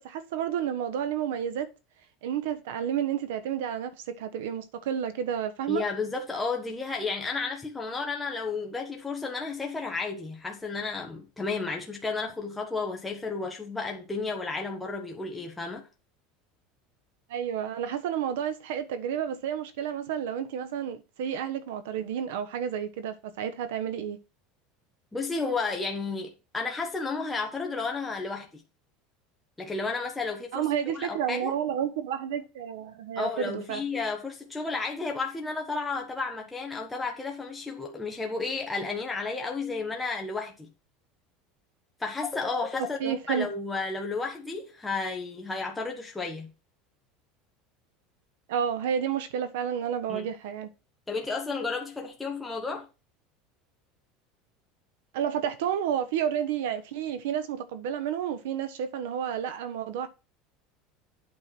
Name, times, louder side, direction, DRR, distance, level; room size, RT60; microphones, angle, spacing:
voice 1, 0.0-1.7 2.2-5.8 17.3-24.2 30.5-33.8 42.8-43.5 48.5-50.7 55.1-60.1, right 9 dB, 90° right, 1.2 m, -31 dB
voice 2, 5.7-15.8 25.1-28.6 29.6-30.6 30.9-31.5 33.2-40.7 42.0-46.5 50.1-50.2 51.1-52.9, left 4 dB, 10° left, 1.2 m, -32 dB
8.6 x 4.6 x 6.1 m
supercardioid pair, 155°, 0 cm